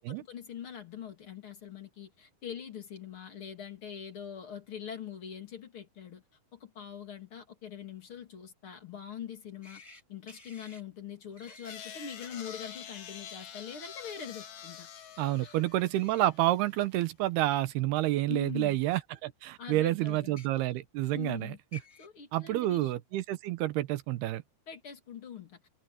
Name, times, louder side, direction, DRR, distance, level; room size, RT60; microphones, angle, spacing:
voice 1, 0.0-6.2 6.5-9.8 10.1-14.9 15.4-15.6 18.3-18.8 19.6-20.4 21.1-21.6 22.0-22.9 24.7-25.6, left 8 dB, 35° left, 2.9 m, -43 dB
sound 1, 9.6-10.0 10.3-10.8 11.4-11.8 12.2-12.6 15.9-16.3 17.1-17.2 18.4-18.5 20.2-20.5 21.4-21.5 21.7-22.1, left 3 dB, 5° left, 7.1 m, -52 dB
sound 2, 11.5-16.8, left 9 dB, 80° left, 4.7 m, -47 dB
voice 2, 15.2-21.5 22.3-24.4, right 15 dB, 75° right, 2.9 m, -29 dB
omnidirectional pair, 4.8 m